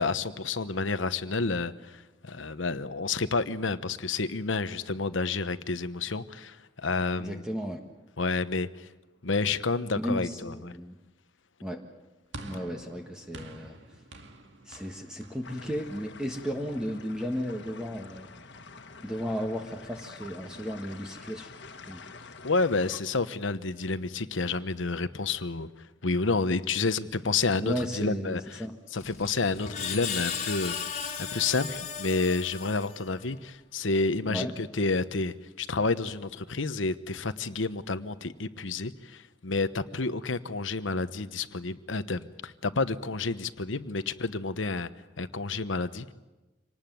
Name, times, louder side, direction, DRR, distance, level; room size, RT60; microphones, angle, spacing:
voice 1, 0.0-7.5 8.2-8.9 9.2-10.8 22.4-25.7 26.0-28.7 28.9-30.8 31.2-44.9 45.2-46.1, left 3 dB, 90° left, 12 dB, 1.1 m, -30 dB
voice 2, 7.2-7.8 9.9-11.0 11.6-11.8 12.4-13.8 14.7-18.3 19.0-21.5 21.9-22.0 27.6-28.7 34.3-34.5, equal, 5° right, 2 dB, 1.5 m, -34 dB
sound 1, 12.3-16.8, right 2 dB, 75° right, 2.2 m, -47 dB
sound 2, 15.4-23.0, left 4 dB, 70° left, 1.7 m, -47 dB
Screech, 29.0-33.3, left 7 dB, 35° left, 2.3 m, -36 dB
26.0 x 19.0 x 9.3 m, 1.1 s
head